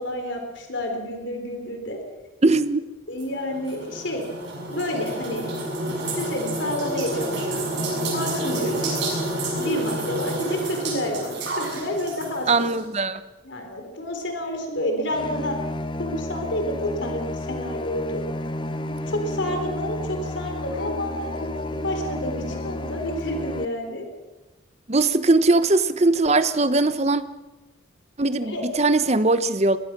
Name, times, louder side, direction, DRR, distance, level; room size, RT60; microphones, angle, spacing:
voice 1, 0.0-2.0 3.1-4.2 4.7-5.6 5.8-7.6 8.1-9.0 9.6-12.5 13.4-15.6 16.0-18.2 19.1-21.4 21.7-24.1 28.4-28.6, left 1 dB, 60° left, 3.9 m, -29 dB
voice 2, 2.4-2.9 12.5-13.2 24.9-27.2 28.2-29.8, right 2 dB, 30° right, 0.9 m, -20 dB
sound 1, 3.2-12.8, right 1 dB, 55° right, 7.3 m, -29 dB
sound 2, 15.1-23.6, left 1 dB, 25° left, 0.6 m, -31 dB
Dog, 18.3-19.8 20.6-23.0, left 2 dB, 45° left, 1.4 m, -40 dB
23.0 x 20.0 x 6.1 m
head